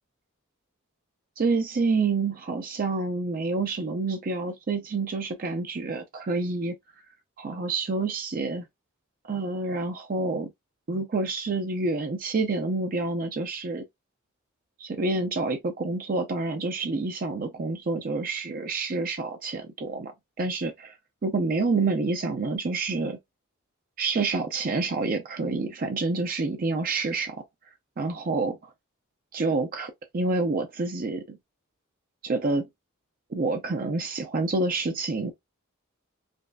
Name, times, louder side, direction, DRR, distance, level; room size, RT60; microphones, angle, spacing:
voice 1, 1.4-6.7 7.4-8.7 9.2-10.5 10.9-13.8 14.8-20.9 21.2-23.2 24.0-27.4 28.0-28.7 29.3-31.4 32.2-32.7 33.3-35.3, right 3 dB, 45° right, 0.5 m, -28 dB
5.1 x 2.4 x 2.2 m
head